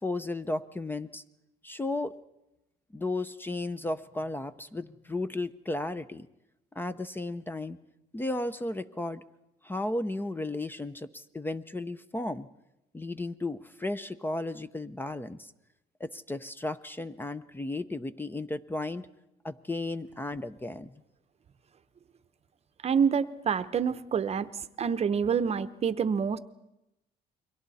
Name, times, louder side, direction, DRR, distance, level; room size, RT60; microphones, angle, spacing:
voice 1, 0.0-1.2 1.6-2.1 2.9-6.3 6.7-7.8 8.1-9.2 9.6-12.5 12.9-15.5 16.0-19.1 19.4-20.9, left 2 dB, 10° left, 12 dB, 0.7 m, -34 dB
voice 2, 22.8-24.5 24.8-26.4, right 7 dB, 40° right, 12 dB, 0.8 m, -27 dB
29.5 x 23.0 x 4.2 m, 0.92 s
cardioid pair, 110°, 17 cm